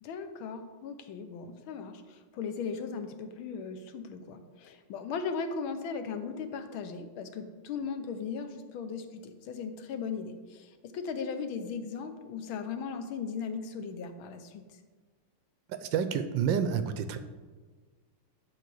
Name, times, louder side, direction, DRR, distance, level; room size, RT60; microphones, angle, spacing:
voice 1, 0.0-14.6, left 5 dB, 75° left, 8 dB, 1.6 m, -37 dB
voice 2, 15.7-17.2, right 7 dB, 70° right, 10 dB, 1.2 m, -29 dB
11.5 x 4.0 x 6.8 m, 1.4 s
omnidirectional pair, 2.4 m